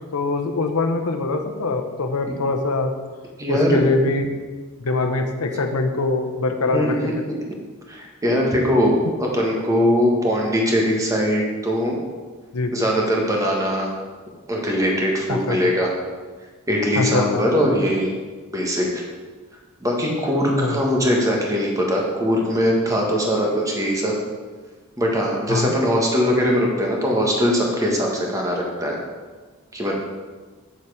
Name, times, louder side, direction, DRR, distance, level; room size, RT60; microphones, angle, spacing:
voice 1, 0.1-2.9 3.5-4.4 4.8-7.1 12.5-12.7 15.3-15.6 17.0-17.4 20.6-20.8 25.5-25.7, left 3 dB, 85° left, 5 dB, 0.8 m, -23 dB
voice 2, 3.4-3.8 6.7-7.1 7.9-12.0 12.7-13.9 14.5-15.9 16.7-18.1 18.5-19.0 19.8-24.1 25.0-29.0 29.7-29.9, equal, 15° right, -1 dB, 1.4 m, -21 dB
7.2 x 7.0 x 4.9 m, 1.4 s
head